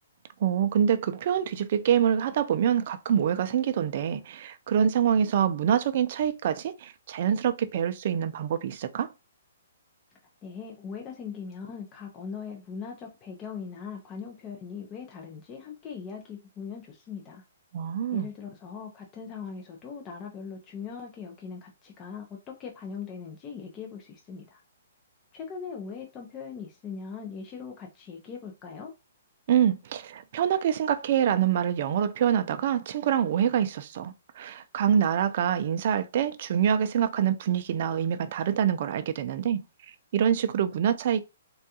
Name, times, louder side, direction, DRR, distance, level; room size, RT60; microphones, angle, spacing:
voice 1, 0.4-9.1 17.7-18.3 29.5-39.6 40.1-41.2, right 9 dB, 50° right, 0.4 m, -25 dB
voice 2, 10.4-17.4 18.1-24.6 25.3-28.9, left 6 dB, 20° left, 0.5 m, -40 dB
3.4 x 2.3 x 2.7 m
hypercardioid pair, 155°, 0 cm